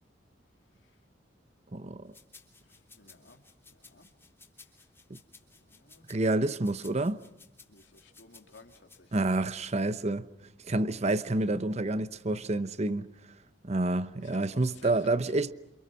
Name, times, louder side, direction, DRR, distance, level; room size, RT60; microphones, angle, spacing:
voice 1, 1.7-2.1 6.1-7.2 9.1-10.3 10.7-13.1 13.6-15.5, right 2 dB, 35° right, 0.9 m, -28 dB
sound 1, 2.1-9.0, left 4 dB, 15° left, 3.4 m, -57 dB
voice 2, 2.6-4.1 4.6-4.9 5.5-6.2 7.7-9.4 14.2-15.5, left 3 dB, 85° left, 3.0 m, -55 dB
29.0 x 28.0 x 6.3 m
head